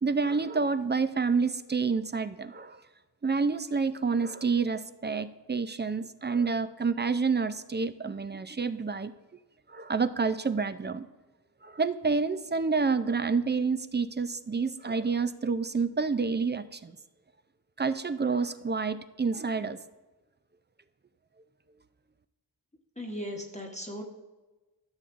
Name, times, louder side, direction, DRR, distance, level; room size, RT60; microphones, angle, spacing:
voice 1, 0.0-2.8 3.2-9.1 9.7-11.1 11.6-16.9 17.8-19.8, right 4 dB, 25° right, 12 dB, 0.4 m, -28 dB
voice 2, 23.0-24.0, equal, 15° left, 0 dB, 1.1 m, -37 dB
13.5 x 7.0 x 2.5 m, 1.2 s
wide cardioid pair, 60°, 41 cm